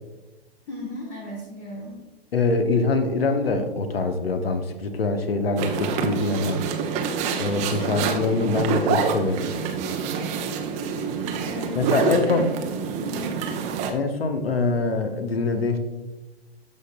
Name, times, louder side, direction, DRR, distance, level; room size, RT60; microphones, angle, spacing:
voice 1, 0.7-2.1 5.9-6.4 7.4-8.4 11.5-12.4 13.0-13.4, left 1 dB, 25° left, 0 dB, 1.2 m, -37 dB
voice 2, 2.3-6.6 7.4-9.5 11.7-12.4 13.9-15.8, left 3 dB, 70° left, 8 dB, 0.9 m, -24 dB
sound 1, 5.6-13.9, right 6 dB, 20° right, 0.6 m, -27 dB
12.5 x 5.3 x 2.2 m, 1.1 s
figure-of-eight pair, 110°, 31 cm